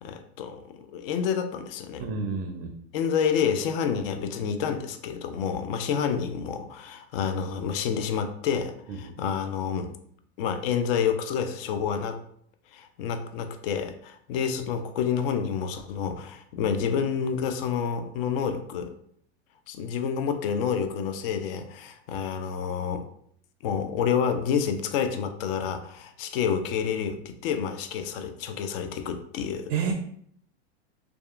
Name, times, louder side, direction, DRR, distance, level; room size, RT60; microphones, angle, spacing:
voice 1, 0.0-2.0 2.9-9.9 10.4-12.2 12.7-18.9 19.7-23.0 23.6-29.7, left 7 dB, 55° left, 7 dB, 0.4 m, -29 dB
voice 2, 2.0-2.7 8.9-9.0 29.7-29.9, right 6 dB, 40° right, 3 dB, 0.4 m, -29 dB
2.7 x 2.3 x 2.4 m, 0.65 s
hypercardioid pair, 120°, 34 cm